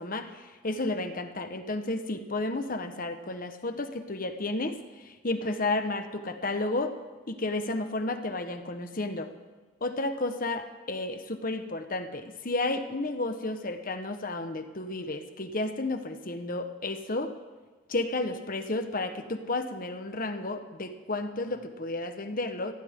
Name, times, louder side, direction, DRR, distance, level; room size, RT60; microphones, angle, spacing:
voice 1, 0.0-6.9 7.3-9.3 9.8-17.3 17.9-22.7, left 2 dB, 45° left, 7 dB, 1.3 m, -32 dB
22.5 x 16.0 x 3.8 m, 1.3 s
head